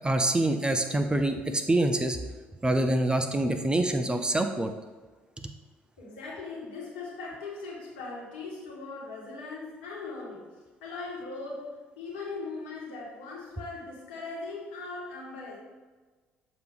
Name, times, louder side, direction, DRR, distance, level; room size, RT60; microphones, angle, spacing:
voice 1, 0.0-2.2 2.6-4.7 5.4-5.5, right 1 dB, 15° right, 6 dB, 0.6 m, -26 dB
voice 2, 6.0-10.5 10.8-15.6, left 3 dB, 70° left, -3 dB, 1.5 m, -39 dB
6.8 x 3.1 x 4.9 m, 1.3 s
figure-of-eight pair, 50°, 6 cm